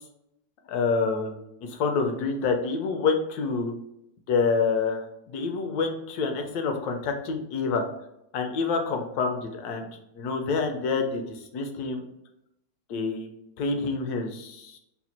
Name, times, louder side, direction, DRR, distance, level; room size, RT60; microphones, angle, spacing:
voice 1, 0.7-3.7 4.3-7.8 8.3-9.9 10.2-11.2 11.5-12.0 12.9-13.3 13.6-14.8, left 4 dB, 70° left, 4 dB, 1.1 m, -27 dB
4.2 x 2.2 x 4.2 m, 0.82 s
omnidirectional pair, 1.9 m